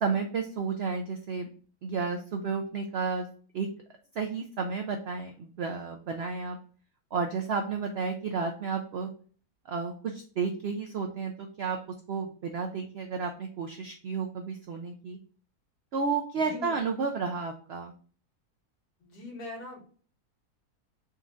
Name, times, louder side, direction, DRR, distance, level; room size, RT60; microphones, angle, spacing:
voice 1, 0.0-1.5 1.8-3.3 3.5-3.7 4.2-6.6 7.1-9.1 9.7-11.8 12.1-15.2 15.9-17.9, right 5 dB, 75° right, 4 dB, 0.5 m, -32 dB
voice 2, 16.4-16.7 19.0-19.8, left 2 dB, 80° left, -3 dB, 2.0 m, -41 dB
4.2 x 2.4 x 3.8 m, 0.43 s
omnidirectional pair, 1.6 m